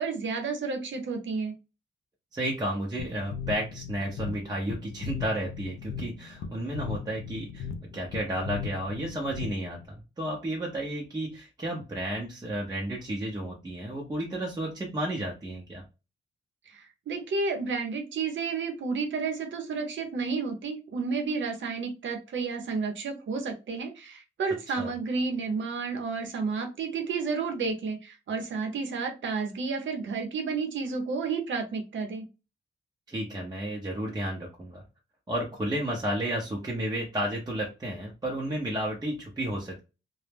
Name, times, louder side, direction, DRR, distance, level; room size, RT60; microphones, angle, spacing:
voice 1, 0.0-1.5 16.7-32.2, right 4 dB, 70° right, 4 dB, 0.8 m, -31 dB
voice 2, 2.3-7.7 7.9-15.8 24.7-24.9 33.1-34.8 35.3-39.8, right 1 dB, 20° right, -2 dB, 0.6 m, -32 dB
sound 1, 3.0-9.8, left 7 dB, 80° left, 0.4 m, -38 dB
2.2 x 2.0 x 3.3 m, 0.29 s
cardioid pair, 85°, 20 cm